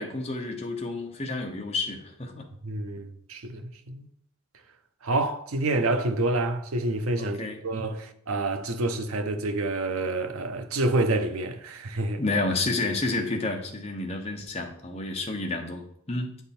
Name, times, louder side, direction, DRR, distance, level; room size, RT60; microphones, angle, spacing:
voice 1, 0.0-2.5 7.2-7.6 12.2-16.4, left 2 dB, 30° left, 0.9 m, -30 dB
voice 2, 2.6-4.1 5.0-12.2, right 2 dB, 70° right, 0.6 m, -28 dB
7.9 x 3.6 x 4.2 m
head